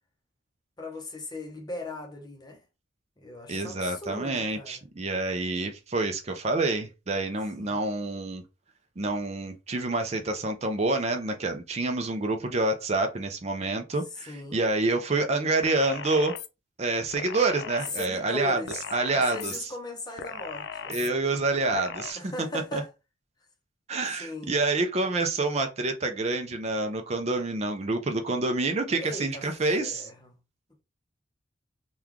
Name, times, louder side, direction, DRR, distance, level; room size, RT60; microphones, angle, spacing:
voice 1, 0.8-2.6 3.2-4.8 7.6-7.8 14.2-14.6 17.9-18.8 19.1-21.2 22.2-22.9 24.2-24.6 28.9-29.4 29.8-30.4, left 1 dB, 20° left, 0.7 m, -38 dB
voice 2, 3.5-8.4 9.0-16.3 16.8-18.6 18.9-19.7 20.9-22.3 22.7-22.8 23.9-30.1, right 2 dB, 35° right, 0.4 m, -27 dB
sound 1, 15.6-16.5 17.1-18.1 18.7-19.6 20.2-21.1 21.7-22.1, left 6 dB, 60° left, 0.4 m, -37 dB
3.0 x 2.3 x 3.6 m
head